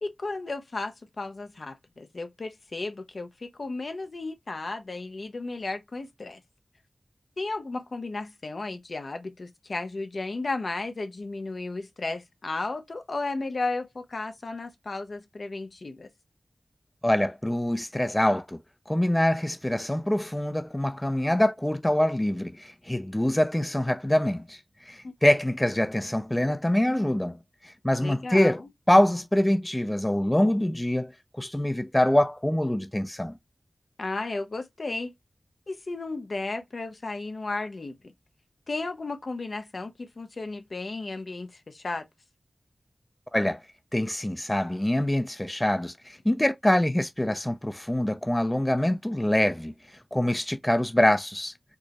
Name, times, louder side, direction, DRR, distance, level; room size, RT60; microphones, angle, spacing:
voice 1, 0.0-6.4 7.4-16.1 25.0-25.1 28.0-28.7 34.0-35.1 35.7-38.1 38.7-42.1, left 3 dB, 70° left, 0.6 m, -34 dB
voice 2, 17.0-18.6 18.9-24.6 24.9-27.4 27.6-28.6 28.9-31.1 31.4-33.4 43.3-43.6 43.9-49.7 50.1-51.5, left 1 dB, 15° left, 0.3 m, -24 dB
4.5 x 2.0 x 2.8 m
cardioid pair, 45°, 0 cm